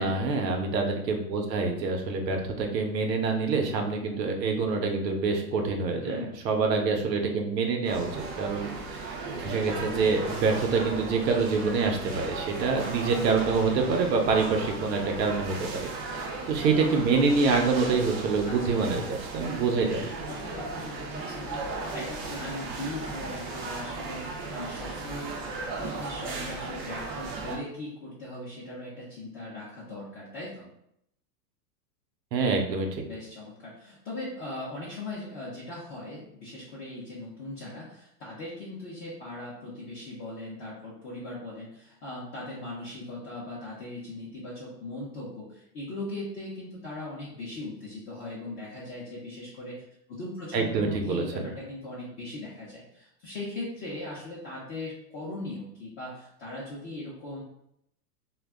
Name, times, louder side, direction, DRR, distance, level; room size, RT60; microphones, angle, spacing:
voice 1, 0.0-15.9 16.2-20.0 32.3-33.0 50.5-51.4, right 4 dB, 85° right, 3 dB, 0.8 m, -26 dB
voice 2, 6.0-6.4 18.4-18.9 20.3-25.4 25.8-30.7 33.0-49.8 50.1-57.4, left 2 dB, 25° left, -7 dB, 0.5 m, -39 dB
sound 1, 7.8-27.6, right 3 dB, 35° right, 0.4 m, -36 dB
2.3 x 2.0 x 3.4 m, 0.76 s
hypercardioid pair, 130°, 49 cm